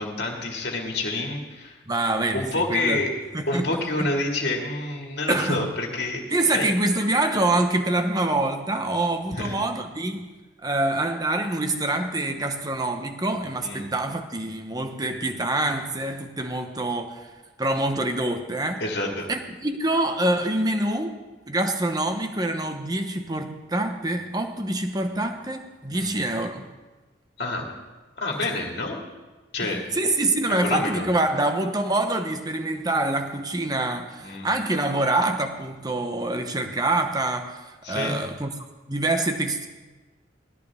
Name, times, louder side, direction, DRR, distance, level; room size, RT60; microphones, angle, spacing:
voice 1, 0.0-1.8 2.3-3.1 3.5-6.2 6.5-6.7 9.4-9.5 13.6-13.9 18.8-19.3 25.9-26.1 27.4-27.7 28.2-29.0 29.5-29.8 30.6-31.0 34.2-34.5 37.8-38.2, left 2 dB, 55° left, 0 dB, 2.2 m, -28 dB
voice 2, 1.9-3.0 3.3-4.1 5.3-5.7 6.3-10.3 10.6-17.3 17.6-18.8 19.3-21.2 21.5-26.7 28.4-28.5 29.6-38.5 38.9-39.7, right 2 dB, 20° right, 6 dB, 0.9 m, -25 dB
18.5 x 13.0 x 3.6 m, 1.2 s
head